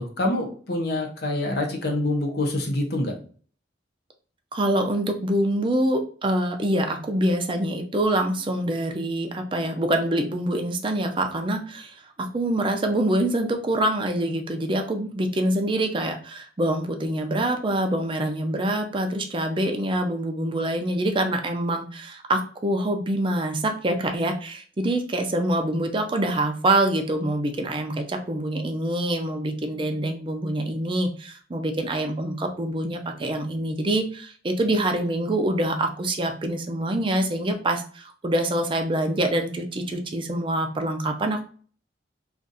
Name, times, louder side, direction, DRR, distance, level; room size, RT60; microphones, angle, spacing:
voice 1, 0.0-3.1, left 1 dB, 60° left, 3 dB, 0.7 m, -26 dB
voice 2, 4.5-41.4, right 1 dB, 30° right, 5 dB, 0.5 m, -25 dB
2.5 x 2.4 x 3.9 m, 0.43 s
head